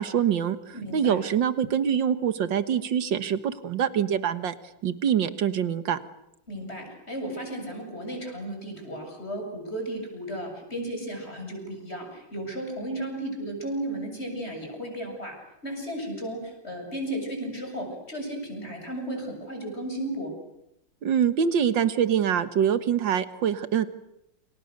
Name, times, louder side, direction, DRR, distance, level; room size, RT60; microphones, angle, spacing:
voice 1, 0.0-4.5 4.8-6.0 21.0-24.0, right 8 dB, 75° right, 12 dB, 2.1 m, -25 dB
voice 2, 0.7-1.2 6.5-15.4 15.6-20.3, right 1 dB, 30° left, 3 dB, 7.9 m, -34 dB
29.0 x 29.0 x 6.7 m, 0.83 s
omnidirectional pair, 2.1 m